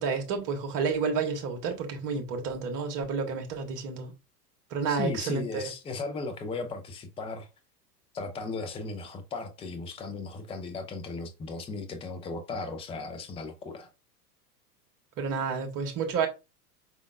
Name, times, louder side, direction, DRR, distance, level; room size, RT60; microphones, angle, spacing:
voice 1, 0.0-4.1 4.7-5.7 15.2-16.3, right 5 dB, 40° right, 1.5 m, -30 dB
voice 2, 4.9-7.5 8.1-13.9, left 3 dB, 10° left, 0.6 m, -36 dB
5.1 x 3.6 x 2.4 m
figure-of-eight pair, 90°, 48 cm